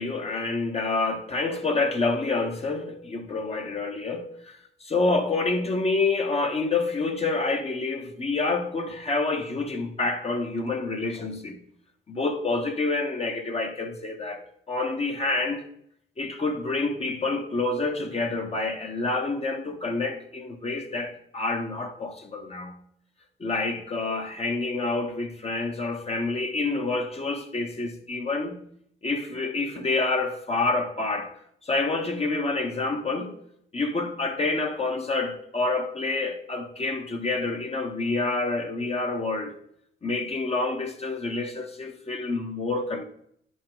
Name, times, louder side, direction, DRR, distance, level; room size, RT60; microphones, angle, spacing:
voice 1, 0.0-11.6 12.1-15.6 16.2-22.8 23.4-28.6 29.0-31.3 31.6-33.4 33.7-39.5 40.0-43.0, left 3 dB, 30° left, 1.1 m, -28 dB
9.5 x 5.3 x 3.8 m
cardioid pair, 90°, 20 cm